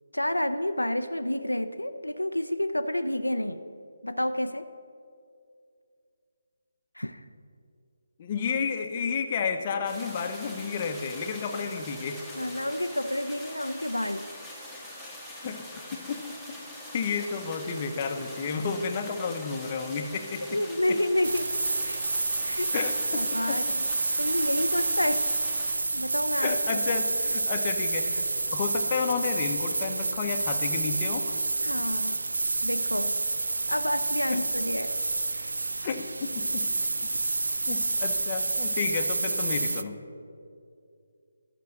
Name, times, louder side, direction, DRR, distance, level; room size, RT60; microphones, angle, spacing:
voice 1, 0.1-3.7 4.0-4.7 7.0-7.2 12.3-14.3 20.5-21.5 21.8-22.0 22.4-22.7 23.1-23.8 24.2-25.3 25.7-26.6 31.6-32.2 32.6-33.2 33.7-35.0 35.3-35.5 36.8-36.9, left 1 dB, 90° left, 9 dB, 0.5 m, -29 dB
voice 2, 8.2-12.2 15.4-15.7 16.1-16.2 16.9-20.6 20.9-21.0 22.7-23.6 24.1-24.3 26.4-31.4 34.3-34.4 35.8-36.7 37.7-40.0, left 5 dB, 30° left, 5 dB, 0.8 m, -31 dB
sound 1, 9.9-25.7, left 1 dB, ahead, 1.5 m, -43 dB
sound 2, 21.2-39.8, right 3 dB, 70° right, 0.4 m, -29 dB
11.5 x 6.2 x 6.6 m, 2.4 s
figure-of-eight pair, 150°, 0 cm